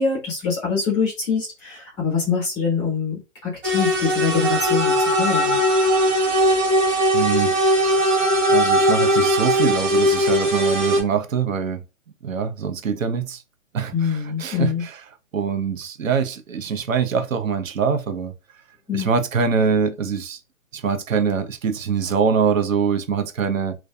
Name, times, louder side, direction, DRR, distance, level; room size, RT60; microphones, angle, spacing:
voice 1, 0.0-5.6 13.9-14.8 18.9-19.1, left 5 dB, 10° left, 0.6 m, -24 dB
sound 1, 3.6-11.0, equal, 35° right, 1.0 m, -19 dB
voice 2, 7.1-7.5 8.5-11.8 12.2-13.4 13.7-15.0 15.3-18.3 18.9-20.4 20.7-23.8, right 6 dB, 85° right, 0.7 m, -23 dB
2.6 x 2.2 x 2.2 m
hypercardioid pair, 150°, 39 cm